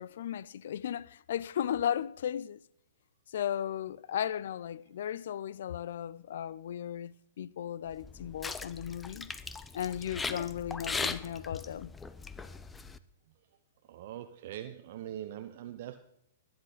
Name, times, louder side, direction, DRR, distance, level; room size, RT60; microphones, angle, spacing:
voice 1, 0.0-2.6 3.3-9.3 9.7-11.9, left 10 dB, 65° left, 0.5 m, -35 dB
sound 1, 7.9-13.0, left 4 dB, 10° left, 0.7 m, -39 dB
voice 2, 13.9-16.0, right 11 dB, 55° right, 0.9 m, -42 dB
19.5 x 10.5 x 4.1 m
hypercardioid pair, 120°, 0 cm